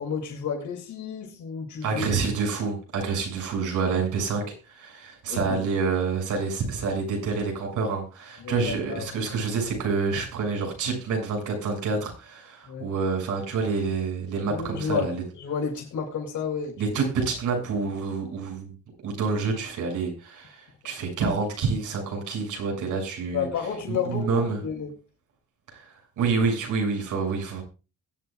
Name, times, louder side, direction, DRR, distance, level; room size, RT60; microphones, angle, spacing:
voice 1, 0.0-2.1 5.3-5.6 8.4-9.4 12.7-12.9 14.5-16.8 23.3-24.9, left 6 dB, 75° left, -5 dB, 5.5 m, -31 dB
voice 2, 1.8-15.2 16.8-18.7 19.0-23.5 23.9-24.6 25.7-27.6, right 4 dB, 85° right, 1 dB, 7.1 m, -28 dB
22.0 x 9.5 x 2.5 m, 0.31 s
cardioid pair, 90°, 30 cm